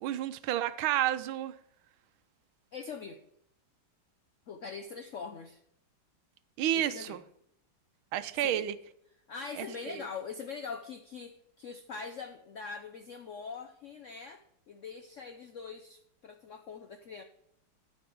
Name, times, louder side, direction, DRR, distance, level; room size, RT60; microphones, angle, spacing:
voice 1, 0.0-1.6 6.6-7.2 8.1-8.7 9.6-10.0, right 12 dB, 90° right, 1.5 m, -31 dB
voice 2, 2.7-3.2 4.5-5.6 6.7-7.2 8.4-8.6 9.3-17.2, left 5 dB, 75° left, 0.7 m, -43 dB
12.5 x 5.3 x 6.1 m
omnidirectional pair, 2.2 m